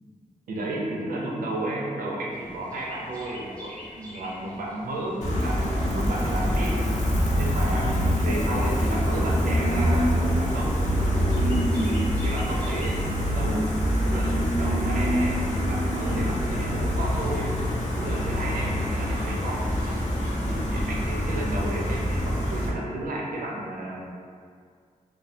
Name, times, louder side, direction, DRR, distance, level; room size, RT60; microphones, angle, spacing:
voice 1, 0.5-6.8 7.3-10.7 11.7-17.5 18.0-20.0 20.5-24.1, right 1 dB, 85° right, -2 dB, 0.4 m, -33 dB
Chirp tweet, 2.3-13.1, left 1 dB, 10° left, 0.5 m, -47 dB
Gull seagull, 5.2-22.7, equal, 55° left, 0.5 m, -25 dB
2.2 x 2.1 x 2.6 m, 2.1 s
wide cardioid pair, 90°, 14 cm